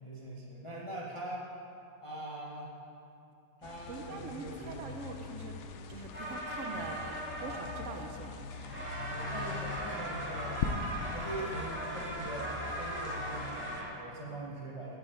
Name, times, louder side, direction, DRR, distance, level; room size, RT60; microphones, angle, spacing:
voice 1, 0.0-1.5 2.0-2.7 3.6-4.8 6.7-6.9 7.4-8.0 9.1-15.0, right 1 dB, 25° left, -5 dB, 0.7 m, -42 dB
sound 1, 3.6-13.8, left 5 dB, 80° left, 0.6 m, -42 dB
voice 2, 3.9-5.5 5.9-8.3 14.3-14.5, right 4 dB, 55° right, 5 dB, 1.0 m, -43 dB
sound 2, 6.1-8.2 8.5-13.9, right 1 dB, 5° right, 1.7 m, -39 dB
9.5 x 9.0 x 4.5 m, 2.7 s
omnidirectional pair, 1.9 m